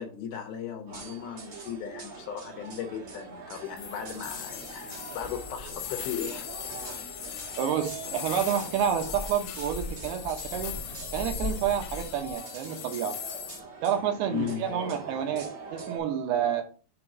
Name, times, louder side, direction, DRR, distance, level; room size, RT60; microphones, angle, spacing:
voice 1, 0.0-6.5 14.3-14.7, left 8 dB, 75° left, 2.5 m, -36 dB
sound 1, 0.9-16.0, right 4 dB, 60° right, 1.4 m, -44 dB
sound 2, 3.8-13.6, left 11 dB, 90° left, 2.8 m, -40 dB
sound 3, 3.8-12.4, left 3 dB, 40° right, 0.5 m, -42 dB
voice 2, 7.6-10.8 11.1-13.2 13.8-16.6, right 9 dB, 75° right, 2.7 m, -29 dB
7.0 x 2.9 x 5.9 m
omnidirectional pair, 4.9 m